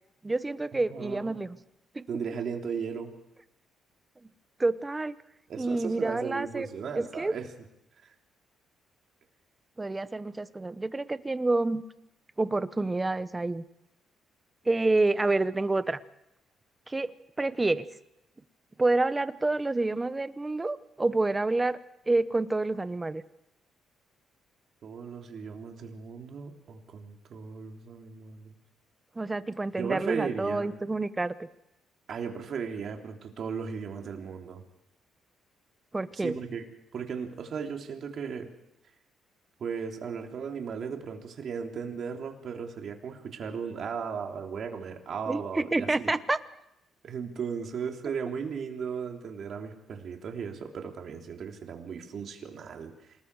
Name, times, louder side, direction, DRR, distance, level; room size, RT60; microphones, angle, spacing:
voice 1, 0.2-1.6 1.9-2.1 4.6-5.1 5.6-6.7 6.9-7.3 9.8-11.8 12.4-13.6 14.6-16.0 16.9-17.1 17.4-17.9 18.8-21.8 22.1-23.2 29.2-31.5 35.9-36.4 45.3-46.4, right 2 dB, 15° right, 14 dB, 0.9 m, -28 dB
voice 2, 0.9-1.4 2.1-3.1 5.5-7.5 8.0-8.1 24.8-28.5 29.8-30.7 32.1-34.6 36.2-36.6 36.9-38.5 39.6-46.1 47.0-52.9, right 6 dB, 55° right, 2 dB, 3.2 m, -36 dB
27.5 x 20.0 x 4.8 m, 0.84 s
cardioid pair, 105°, 0 cm